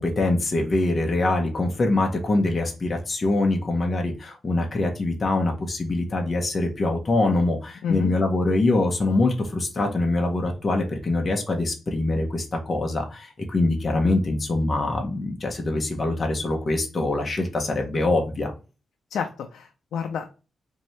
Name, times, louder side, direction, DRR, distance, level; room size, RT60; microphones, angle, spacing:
voice 1, 0.0-18.5, left 2 dB, 30° left, 1 dB, 0.7 m, -24 dB
voice 2, 7.8-8.1 19.1-20.3, left 7 dB, 85° left, 5 dB, 0.4 m, -29 dB
4.2 x 2.7 x 3.2 m, 0.32 s
wide cardioid pair, 155°, 0 cm